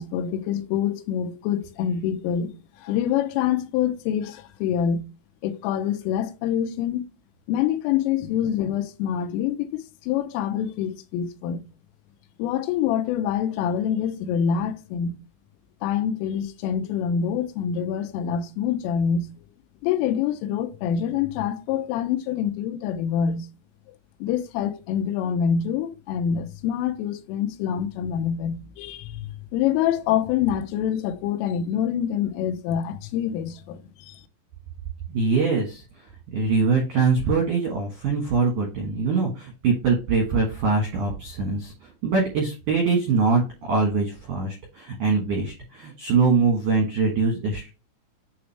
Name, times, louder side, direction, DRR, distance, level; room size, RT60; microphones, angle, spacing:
voice 1, 0.0-5.1 5.4-7.1 7.5-11.6 12.4-15.2 15.8-19.3 19.8-23.5 24.2-34.2, left 8 dB, 90° left, 3.3 m, -26 dB
voice 2, 35.1-35.8 36.3-47.7, right 4 dB, 75° right, 1.9 m, -23 dB
9.1 x 3.4 x 3.3 m
omnidirectional pair, 5.7 m